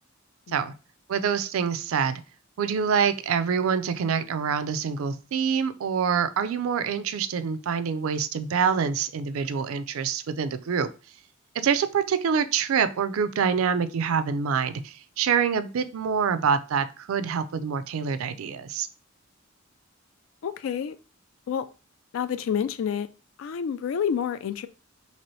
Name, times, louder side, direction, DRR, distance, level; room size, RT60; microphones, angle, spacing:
voice 1, 1.1-2.2 2.6-10.9 11.6-18.9, right 6 dB, 85° right, 0.4 m, -26 dB
voice 2, 20.4-21.0 21.5-21.7 22.1-23.1 23.4-24.7, left 7 dB, 70° left, 0.3 m, -28 dB
2.9 x 2.8 x 3.1 m
head